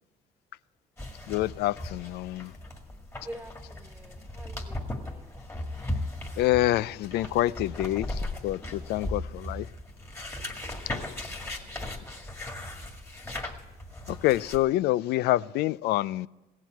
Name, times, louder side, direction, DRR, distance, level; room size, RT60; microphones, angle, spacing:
sound 1, 1.0-14.6, left 1 dB, 15° left, 2.0 m, -37 dB
voice 1, 1.3-2.5 6.4-9.7 14.1-16.3, left 16 dB, 75° left, 0.4 m, -27 dB
voice 2, 3.2-5.4 7.1-7.4 11.4-12.3 12.7-13.0, right 1 dB, 10° right, 1.3 m, -48 dB
16.5 x 7.4 x 9.3 m
cardioid pair, 110°, 17 cm